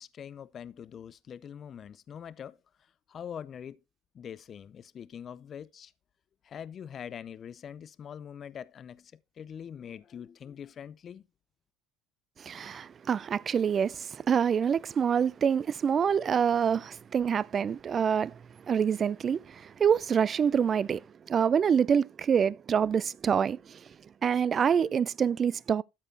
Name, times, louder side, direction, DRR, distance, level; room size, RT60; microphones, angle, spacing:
voice 1, 0.0-3.8 4.1-5.9 6.4-11.3, left 8 dB, 45° left, 0.5 m, -44 dB
voice 2, 12.4-18.3 18.7-21.0 21.3-23.8 24.2-25.8, right 7 dB, 40° right, 0.4 m, -26 dB
13.0 x 4.4 x 4.3 m
supercardioid pair, 85°, 0 cm